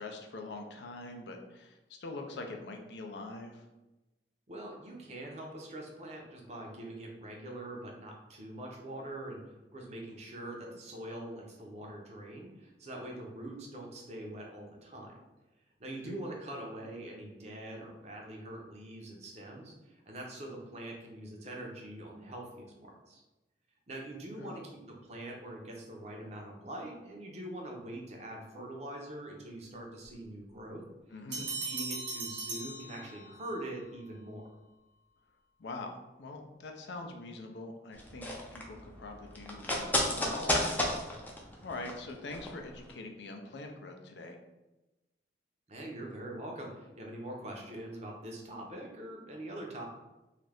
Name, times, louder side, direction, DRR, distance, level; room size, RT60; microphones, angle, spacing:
voice 1, 0.0-3.7 15.9-16.2 24.4-24.6 31.1-31.5 35.6-41.3 41.6-44.4, left 2 dB, 75° left, 3 dB, 0.4 m, -44 dB
voice 2, 4.5-15.1 15.8-23.2 23.9-30.8 31.3-34.5 45.7-49.8, right 1 dB, 40° right, 0 dB, 0.5 m, -43 dB
sound 1, 31.3-33.6, right 3 dB, 80° right, 0.8 m, -39 dB
sound 2, 37.9-42.6 42.8-42.9, left 1 dB, 10° left, 0.4 m, -32 dB
2.6 x 2.4 x 3.3 m, 1.0 s
head